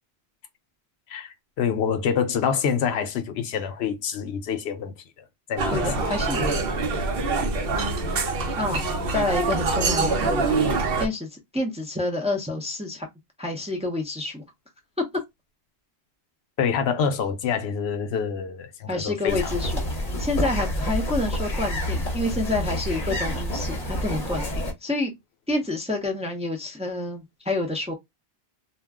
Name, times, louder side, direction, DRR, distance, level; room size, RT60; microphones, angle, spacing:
voice 1, 1.1-4.9 5.5-6.3 7.7-7.8 16.6-19.5, left 7 dB, 80° left, 0.8 m, -27 dB
sound 1, 5.6-11.1, right 3 dB, 65° right, 0.8 m, -24 dB
voice 2, 5.7-6.6 8.6-10.4 11.0-13.1 13.4-14.4 18.9-19.8 20.2-25.1 25.5-27.9, left 2 dB, 10° right, 0.5 m, -28 dB
sound 2, 19.3-24.7, left 1 dB, 40° left, 0.9 m, -28 dB
2.4 x 2.1 x 3.5 m
omnidirectional pair, 1.1 m